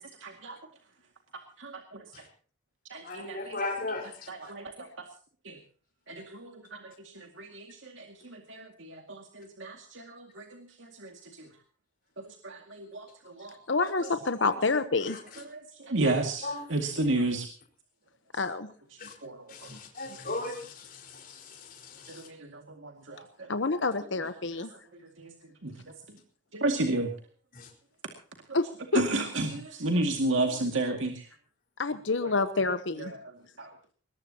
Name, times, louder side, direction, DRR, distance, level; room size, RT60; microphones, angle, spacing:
voice 1, 0.2-0.6 1.6-2.0 2.9-3.6 4.3-4.9 5.4-5.6 6.1-11.5 12.2-13.6 15.5-17.5 19.2-19.5 19.7-19.8 22.1-23.5 25.2-25.3 25.6-25.7 26.5-27.1 28.9-31.3 32.6-32.7 33.0-33.1 33.6-33.7, right 2 dB, 80° right, 3 dB, 2.2 m, -32 dB
voice 2, 3.0-4.3 16.4-16.6 19.0-19.1 19.5-22.3 27.5-27.7, left 2 dB, 45° left, 0 dB, 4.8 m, -37 dB
voice 3, 13.7-15.2 18.3-18.7 23.5-24.8 28.5-28.7 28.9-29.0 31.8-33.1, left 3 dB, 75° left, 10 dB, 1.0 m, -28 dB
21.0 x 20.0 x 2.9 m, 0.41 s
head